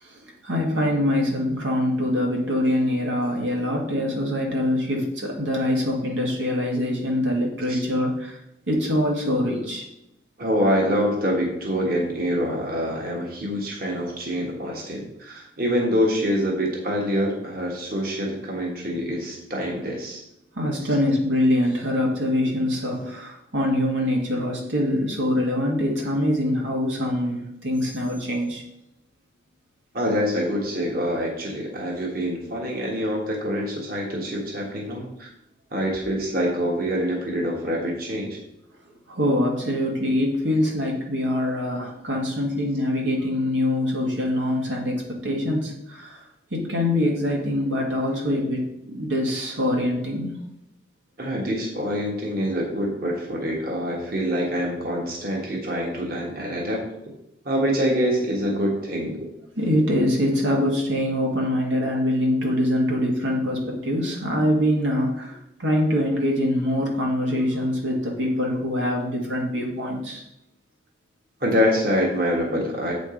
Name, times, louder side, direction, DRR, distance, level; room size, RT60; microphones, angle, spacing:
voice 1, 0.0-8.4 8.7-9.9 20.5-28.6 39.1-46.2 46.5-50.4 59.6-70.2, left 1 dB, 90° right, -1 dB, 2.0 m, -24 dB
voice 2, 10.4-20.2 29.9-35.3 35.7-38.4 51.2-56.8 57.4-59.2 71.4-72.9, equal, 50° right, -1 dB, 1.6 m, -25 dB
7.9 x 5.1 x 5.0 m, 0.84 s
head